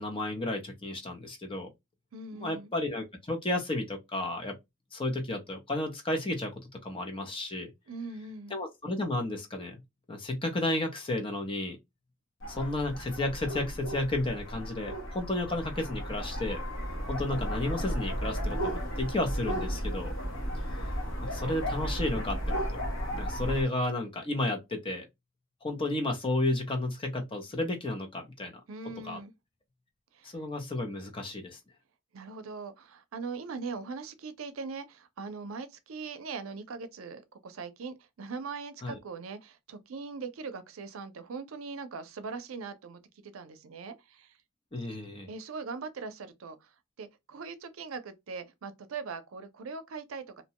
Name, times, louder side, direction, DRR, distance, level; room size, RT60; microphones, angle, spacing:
voice 1, 0.0-1.7 2.3-4.6 4.9-6.5 6.8-7.7 8.5-9.8 10.1-11.8 12.5-16.6 17.1-20.1 21.2-22.8 23.1-25.1 25.6-28.5 29.0-29.2 30.2-31.6 38.8-39.0 44.7-45.3, left 2 dB, 25° left, 0.6 m, -32 dB
voice 2, 2.1-2.7 7.9-8.6 28.7-29.3 30.1-30.4 32.1-44.3 45.3-46.7 47.0-50.4, right 4 dB, 85° right, 0.5 m, -41 dB
sound 1, 12.4-23.6, equal, 65° left, 1.0 m, -34 dB
2.8 x 2.2 x 2.9 m
head